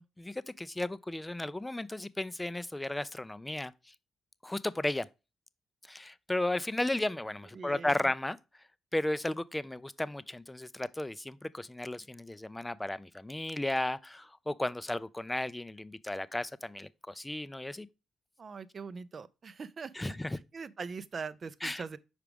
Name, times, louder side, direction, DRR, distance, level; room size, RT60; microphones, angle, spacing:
voice 1, 0.2-3.7 4.4-5.1 5.9-8.4 8.9-17.9 20.0-20.4 21.6-21.8, left 1 dB, 10° left, 0.4 m, -34 dB
voice 2, 7.5-8.1 18.4-22.0, right 5 dB, 45° right, 0.5 m, -42 dB
6.0 x 4.8 x 3.4 m
cardioid pair, 75°, 0 cm